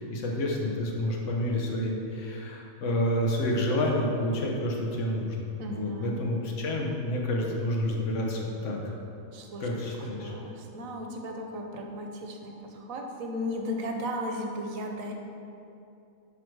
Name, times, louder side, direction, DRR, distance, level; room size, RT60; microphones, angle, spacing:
voice 1, 0.0-8.9 9.6-10.3, left 1 dB, 65° left, -1 dB, 1.3 m, -29 dB
voice 2, 5.6-6.1 9.3-9.7 10.1-15.1, equal, 80° right, 2 dB, 1.2 m, -35 dB
11.0 x 3.7 x 4.7 m, 2.7 s
omnidirectional pair, 1.4 m